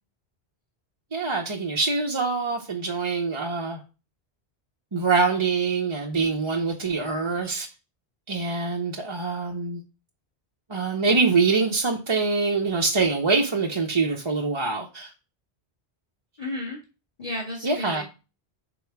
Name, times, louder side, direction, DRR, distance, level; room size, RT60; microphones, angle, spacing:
voice 1, 1.1-3.8 4.9-7.7 8.3-9.8 10.7-15.1 17.6-18.0, right 4 dB, 30° right, 0 dB, 0.7 m, -24 dB
voice 2, 16.4-16.8 17.2-18.0, left 1 dB, 35° left, -3 dB, 1.8 m, -33 dB
6.8 x 3.9 x 4.6 m, 0.32 s
omnidirectional pair, 1.1 m